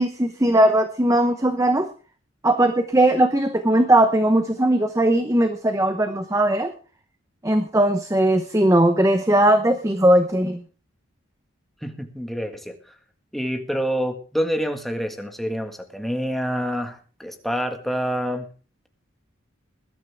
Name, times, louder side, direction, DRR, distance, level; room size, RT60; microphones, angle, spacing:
voice 1, 0.0-1.9 2.4-6.7 7.4-10.6, right 1 dB, 15° right, 8 dB, 0.8 m, -19 dB
voice 2, 11.8-12.7 13.3-18.4, equal, ahead, 4 dB, 1.7 m, -27 dB
20.5 x 12.0 x 3.5 m, 0.36 s
head